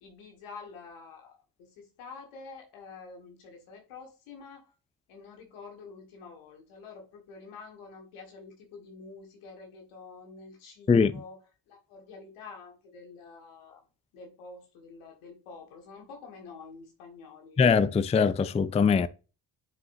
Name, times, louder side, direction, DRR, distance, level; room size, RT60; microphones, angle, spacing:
voice 1, 0.0-4.7 5.1-13.8 14.1-17.6, left 4 dB, 80° left, 1.9 m, -48 dB
voice 2, 17.6-19.1, left 5 dB, 15° left, 0.4 m, -22 dB
9.5 x 4.8 x 2.7 m
hypercardioid pair, 45°, 49 cm